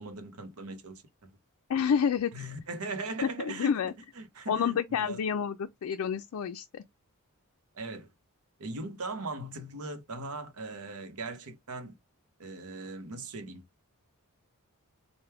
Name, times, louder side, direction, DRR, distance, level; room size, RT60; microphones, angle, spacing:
voice 1, 0.0-1.3 2.3-3.8 4.1-5.2 7.7-8.1 8.6-11.9 12.4-13.6, right 2 dB, 80° right, 0.9 m, -39 dB
voice 2, 1.7-2.3 3.2-3.9 4.5-6.8, left 7 dB, 70° left, 0.4 m, -29 dB
4.5 x 2.2 x 3.3 m
head